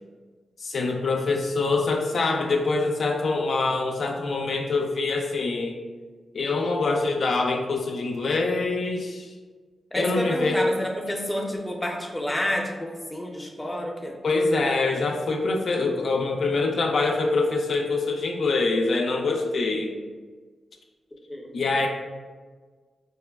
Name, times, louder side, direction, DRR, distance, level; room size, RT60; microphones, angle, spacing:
voice 1, 0.6-5.7 6.3-9.3 10.0-10.6 14.2-19.9 21.5-21.9, left 3 dB, 70° left, 1 dB, 0.3 m, -24 dB
voice 2, 9.9-14.2 21.3-21.5, left 1 dB, 15° left, 0 dB, 0.5 m, -29 dB
4.7 x 2.1 x 2.2 m, 1.4 s
cardioid pair, 75°, 0 cm